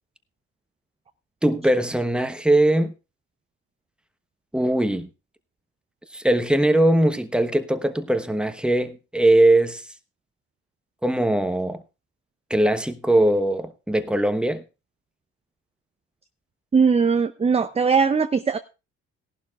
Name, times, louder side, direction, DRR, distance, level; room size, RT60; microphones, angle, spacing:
voice 1, 1.4-2.9 4.5-5.1 6.1-9.8 11.0-11.8 12.5-14.6, right 1 dB, 5° right, 1.1 m, -20 dB
voice 2, 16.7-18.6, right 5 dB, 20° right, 0.6 m, -20 dB
17.5 x 11.5 x 2.4 m
cardioid pair, 85°, 30 cm